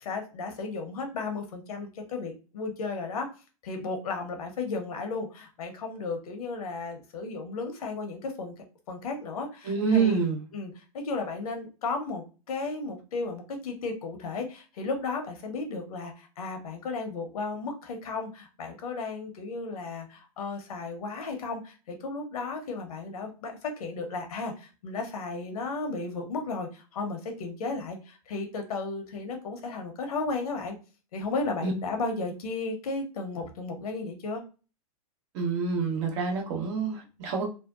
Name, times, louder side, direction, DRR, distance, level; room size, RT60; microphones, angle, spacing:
voice 1, 0.0-3.3 3.6-8.5 8.9-10.2 10.5-30.8 31.1-34.4, left 3 dB, 75° left, 5 dB, 0.9 m, -34 dB
voice 2, 9.6-10.4 31.6-31.7 35.3-37.5, right 5 dB, 55° right, 0 dB, 1.0 m, -27 dB
2.7 x 2.2 x 2.4 m, 0.33 s
hypercardioid pair, 120°, 19 cm